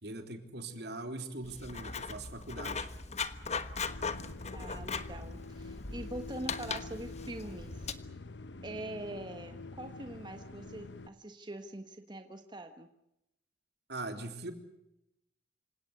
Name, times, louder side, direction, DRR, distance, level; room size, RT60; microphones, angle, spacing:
voice 1, 0.0-2.9 13.9-14.5, right 2 dB, 65° right, 7 dB, 3.4 m, -41 dB
Writing, 1.4-7.9, left 5 dB, 40° left, 1.3 m, -39 dB
sound 1, 3.8-11.1, left 3 dB, 75° left, 1.0 m, -47 dB
voice 2, 4.5-7.9 8.6-12.9, right 1 dB, 25° right, 7 dB, 1.3 m, -43 dB
27.5 x 17.0 x 8.2 m, 0.86 s
head